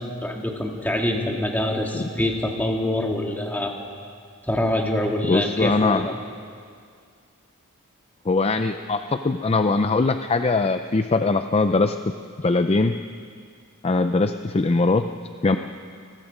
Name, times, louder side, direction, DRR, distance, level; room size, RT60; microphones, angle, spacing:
voice 1, 0.0-3.8 4.5-6.1, left 1 dB, 10° left, 1 dB, 2.0 m, -25 dB
voice 2, 5.2-6.1 8.3-12.0 12.4-13.0 13.8-15.1 15.4-15.6, left 3 dB, 30° left, 8 dB, 0.5 m, -21 dB
29.0 x 19.5 x 5.1 m, 2.2 s
head